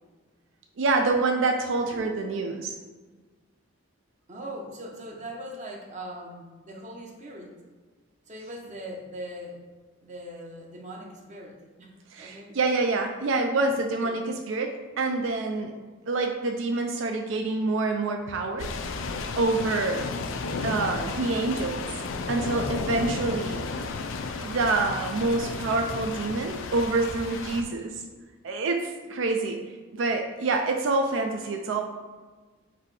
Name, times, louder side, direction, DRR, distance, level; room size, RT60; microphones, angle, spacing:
voice 1, 0.8-2.8 12.1-14.2 14.5-15.7 16.1-18.7 19.4-20.0 20.6-21.9 22.3-23.6 24.4-28.0 28.4-29.6 29.9-31.8, right 3 dB, 65° right, 3 dB, 0.4 m, -26 dB
voice 2, 4.3-7.5 8.3-9.6 10.0-12.5 13.9-14.2 29.0-29.3, right 1 dB, 40° right, 0 dB, 0.7 m, -41 dB
sound 1, 18.6-27.6, left 4 dB, 70° left, 0.4 m, -33 dB
4.0 x 2.7 x 4.7 m, 1.4 s
head